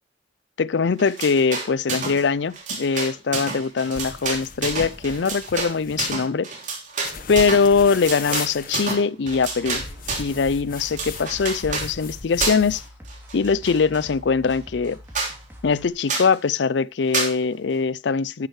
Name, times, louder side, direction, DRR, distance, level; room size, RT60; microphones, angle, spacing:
voice 1, 0.6-6.5 7.3-9.8 10.2-12.8 13.3-15.0 15.6-18.5, left 5 dB, 70° left, 0.5 m, -22 dB
sound 1, 1.0-2.2 2.5-10.4 10.8-11.9 12.4-12.8 13.1-14.0 14.5-14.6 14.8-14.9 15.1-15.4 16.1-16.3 17.1-17.4, right 4 dB, 45° right, 2.9 m, -29 dB
sound 2, 3.9-6.3 7.0-9.0 9.7-12.9, left 5 dB, 50° left, 1.2 m, -37 dB
sound 3, 9.2-15.9, equal, 10° right, 2.9 m, -44 dB
11.0 x 9.1 x 3.2 m
head